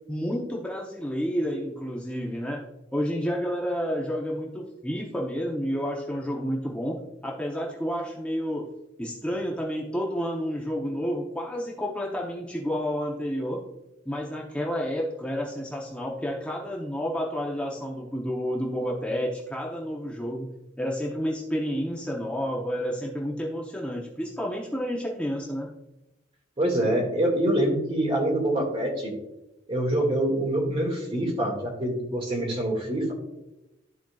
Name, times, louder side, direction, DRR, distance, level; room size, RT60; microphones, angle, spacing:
voice 1, 0.1-2.6 2.9-8.7 9.0-13.6 14.1-20.5 20.8-25.7, equal, 5° left, -2 dB, 0.7 m, -30 dB
voice 2, 26.6-29.1 29.7-33.1, right 1 dB, 30° right, 0 dB, 1.9 m, -25 dB
13.0 x 4.5 x 2.3 m, 0.96 s
head